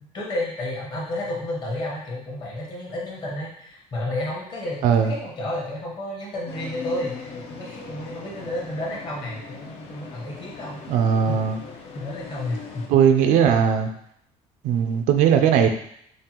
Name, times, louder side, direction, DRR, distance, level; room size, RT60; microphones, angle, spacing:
voice 1, 0.0-11.4 11.9-12.9, left 1 dB, 35° left, -3 dB, 1.0 m, -31 dB
sound 1, 6.5-12.9, left 5 dB, 55° left, 0.6 m, -39 dB
voice 2, 10.9-11.6 12.9-13.9 14.6-15.7, right 8 dB, 70° right, 6 dB, 0.4 m, -18 dB
5.2 x 2.3 x 2.9 m, 0.70 s
cardioid pair, 165°, 13 cm